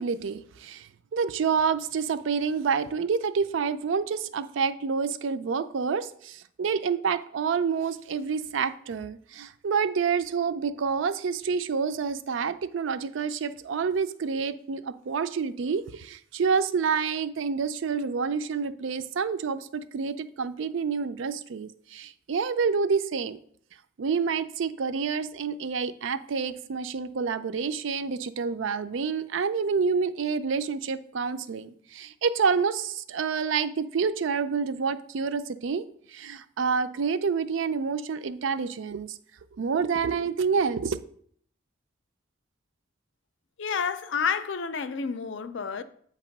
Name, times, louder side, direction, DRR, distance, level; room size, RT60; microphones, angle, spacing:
voice 1, 0.0-23.4 24.0-35.8 36.1-39.2 39.6-41.0, right 5 dB, 75° right, 0.4 m, -28 dB
voice 2, 43.6-45.8, left 6 dB, 70° left, 0.5 m, -29 dB
8.5 x 3.0 x 5.8 m
head